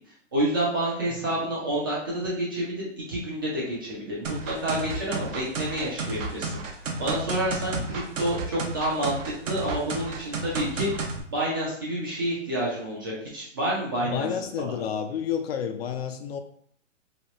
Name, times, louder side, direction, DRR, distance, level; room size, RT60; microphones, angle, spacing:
voice 1, 0.3-6.6 7.0-10.9 11.3-14.3 14.6-14.7, right 1 dB, 20° right, -6 dB, 0.3 m, -29 dB
sound 1, 4.2-11.2, right 3 dB, 85° right, 0.8 m, -32 dB
voice 2, 14.0-16.4, left 8 dB, 55° left, 8 dB, 0.5 m, -30 dB
3.0 x 2.9 x 2.9 m, 0.63 s
hypercardioid pair, 145°, 38 cm